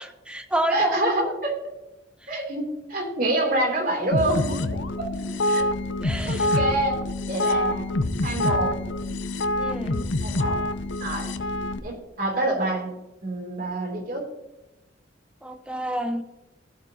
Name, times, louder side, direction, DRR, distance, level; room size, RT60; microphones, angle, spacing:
voice 1, 0.0-1.3 6.0-6.5 9.6-10.0 15.4-16.2, right 1 dB, 5° right, 6 dB, 0.9 m, -29 dB
voice 2, 0.7-1.6 2.3-5.1 5.5-5.7 6.2-7.9 8.2-8.7 10.2-10.6 11.0-11.3 11.8-12.9 13.2-14.3, right 1 dB, 50° right, 2 dB, 3.1 m, -27 dB
sound 1, 4.1-11.8, left 1 dB, 70° left, 0.7 m, -26 dB
15.5 x 8.9 x 2.8 m, 1.0 s
head